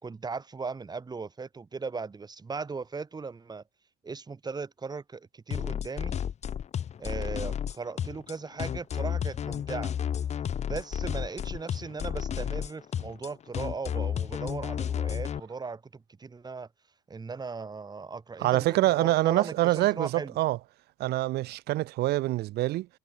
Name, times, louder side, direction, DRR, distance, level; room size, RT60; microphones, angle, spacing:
voice 1, 0.0-3.6 4.0-6.2 7.0-9.9 10.7-16.7 17.1-20.3, right 4 dB, 25° right, 3.2 m, -38 dB
sound 1, 5.5-15.4, left 9 dB, 40° left, 0.9 m, -32 dB
voice 2, 18.4-20.6 21.0-22.9, right 17 dB, 75° right, 0.6 m, -25 dB
cardioid pair, 110°, 17 cm